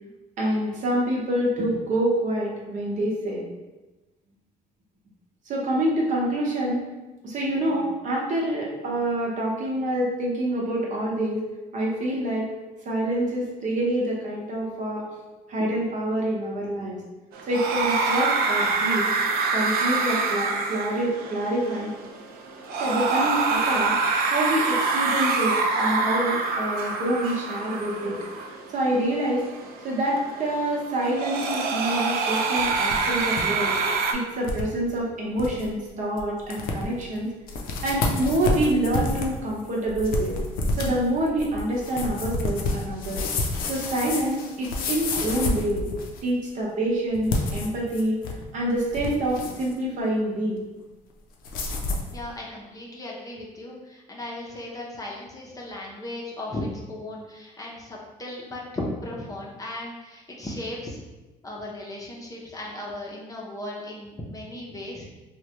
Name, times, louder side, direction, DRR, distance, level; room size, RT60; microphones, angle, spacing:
voice 1, 0.4-3.4 5.5-6.8 7.2-11.4 11.7-12.5 12.8-15.1 15.5-17.0 17.5-19.1 19.5-21.9 22.8-24.0 24.3-28.2 28.7-29.4 29.8-33.7 34.1-37.3 37.8-40.3 40.8-43.2 43.6-45.8 46.2-48.2 48.5-50.6, right 1 dB, 50° right, -3 dB, 0.8 m, -26 dB
sound 1, 17.3-34.1, right 4 dB, 70° right, 0.4 m, -26 dB
sound 2, 32.6-33.4 33.8-33.9 34.4-34.7 35.1-35.2 35.4-35.7 36.2-36.3 36.5-37.0 37.5-46.3 47.2-48.4 48.8-49.7 51.4-52.1, left 2 dB, 65° left, 0.5 m, -29 dB
voice 2, 52.1-61.0 61.4-65.2, left 1 dB, 20° left, -3 dB, 0.6 m, -36 dB
3.2 x 2.2 x 2.9 m, 1.1 s
cardioid pair, 110°, 16 cm